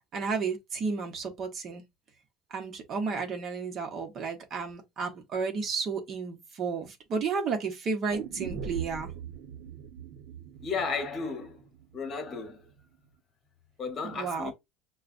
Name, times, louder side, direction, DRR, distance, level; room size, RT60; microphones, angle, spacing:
voice 1, 0.1-1.8 2.5-9.1 14.0-14.5, right 5 dB, 40° right, 1.1 m, -32 dB
sound 1, 8.1-12.1 12.4-12.5, right 7 dB, 65° right, 1.0 m, -41 dB
voice 2, 10.6-11.6 11.9-12.6 13.8-14.5, left 4 dB, 30° left, 1.2 m, -33 dB
6.4 x 2.3 x 2.5 m
cardioid pair, 145°, 0 cm